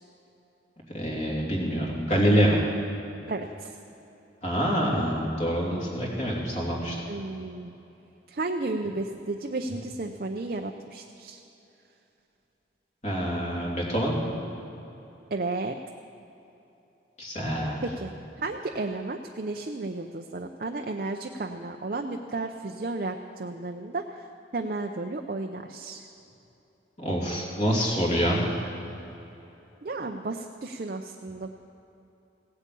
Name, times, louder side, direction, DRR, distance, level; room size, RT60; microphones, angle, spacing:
voice 1, 0.9-2.6 4.4-7.0 13.0-14.2 17.2-17.8 27.0-28.4, equal, 40° left, -3 dB, 2.9 m, -26 dB
voice 2, 3.3-3.8 7.1-7.7 8.3-11.4 15.3-15.8 17.8-18.1 18.4-24.3 24.5-26.0 29.8-31.5, right 2 dB, 50° right, 3 dB, 0.6 m, -33 dB
16.5 x 8.3 x 8.4 m, 3.0 s
head